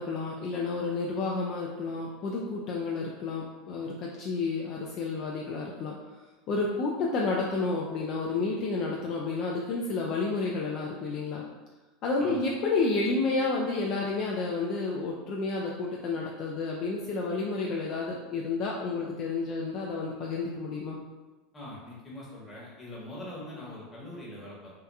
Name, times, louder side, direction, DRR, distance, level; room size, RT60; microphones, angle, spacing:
voice 1, 0.0-6.0 6.5-11.4 12.0-21.0, left 3 dB, 50° left, -2 dB, 0.3 m, -30 dB
voice 2, 21.5-24.7, left 1 dB, 20° left, -5 dB, 1.0 m, -42 dB
2.8 x 2.3 x 2.3 m, 1.2 s
hypercardioid pair, 85°, 0 cm